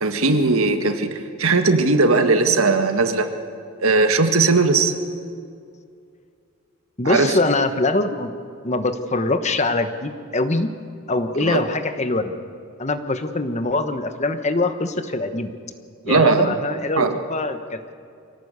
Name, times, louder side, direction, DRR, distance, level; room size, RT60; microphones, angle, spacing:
voice 1, 0.0-3.3 3.8-4.9 7.0-7.3 11.4-11.6 16.0-16.6 17.0-17.1, right 3 dB, 85° right, 7 dB, 1.7 m, -18 dB
voice 2, 7.0-8.3 8.6-10.7 11.1-12.4 12.8-15.5 16.1-17.8, left 2 dB, 35° left, 9 dB, 1.2 m, -23 dB
25.0 x 17.5 x 8.2 m, 2.4 s
head